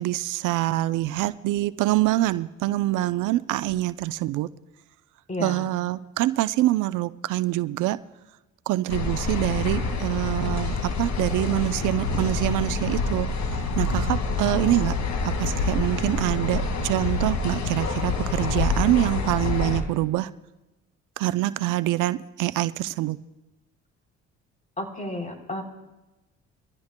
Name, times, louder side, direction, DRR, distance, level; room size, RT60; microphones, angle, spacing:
voice 1, 0.0-4.5 5.4-8.0 8.7-13.3 13.8-14.9 15.4-20.3 21.2-23.2, right 16 dB, 80° right, 0.5 m, -25 dB
voice 2, 5.3-5.7 24.8-25.6, left 1 dB, 25° left, 3.2 m, -32 dB
sound 1, 8.9-19.8, left 3 dB, 60° left, 2.0 m, -27 dB
23.5 x 15.0 x 2.2 m
supercardioid pair, 75°, 31 cm